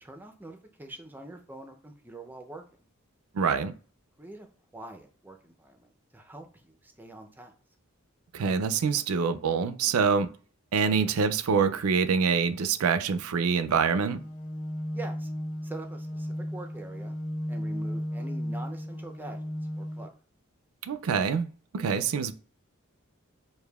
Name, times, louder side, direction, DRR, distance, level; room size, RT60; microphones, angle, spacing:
voice 1, 0.0-2.8 4.2-4.5 4.7-7.5 14.9-15.3 15.6-17.2 17.5-19.4 19.8-20.1, right 2 dB, 10° right, 0.5 m, -44 dB
voice 2, 3.3-3.7 8.3-10.3 10.7-14.2 20.8-21.5 21.7-22.3, right 5 dB, 80° right, 0.4 m, -25 dB
sound 1, 14.1-20.1, equal, 65° left, 1.3 m, -35 dB
6.6 x 2.6 x 2.3 m
head